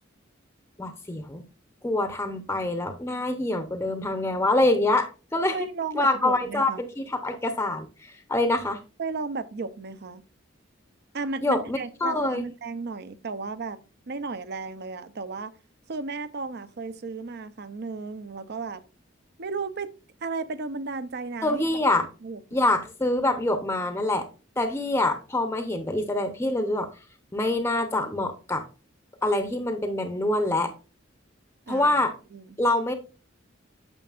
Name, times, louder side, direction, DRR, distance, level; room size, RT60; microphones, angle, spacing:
voice 1, 0.8-1.5 1.8-5.7 5.9-8.8 11.4-12.5 21.4-22.1 22.5-24.3 24.6-26.9 27.3-28.6 29.2-30.7 31.7-32.1 32.6-32.9, left 2 dB, 15° left, 0.6 m, -25 dB
voice 2, 5.5-6.8 9.0-10.3 11.1-15.5 15.9-18.8 19.4-19.9 20.2-21.6 22.2-22.6 31.7-32.0 32.3-32.6, right 4 dB, 55° right, 0.6 m, -34 dB
8.9 x 6.7 x 2.4 m
head